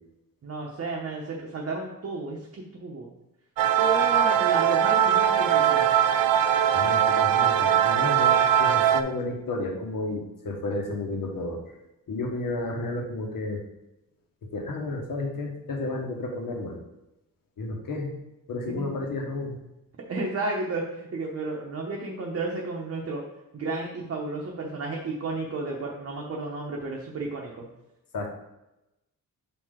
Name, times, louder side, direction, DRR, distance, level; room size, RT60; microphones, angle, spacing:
voice 1, 0.4-3.1 3.8-5.9 18.8-18.9 20.1-23.2 23.5-27.7, right 3 dB, 45° right, -1 dB, 0.9 m, -32 dB
sound 1, 3.6-9.0, right 9 dB, 75° right, 0.5 m, -21 dB
voice 2, 6.7-11.6 12.1-13.6 14.5-16.8 17.6-18.1 18.5-19.6 28.1-28.3, left 2 dB, 70° left, 1 dB, 1.4 m, -32 dB
7.0 x 4.6 x 3.7 m, 0.94 s
wide cardioid pair, 180°, 35 cm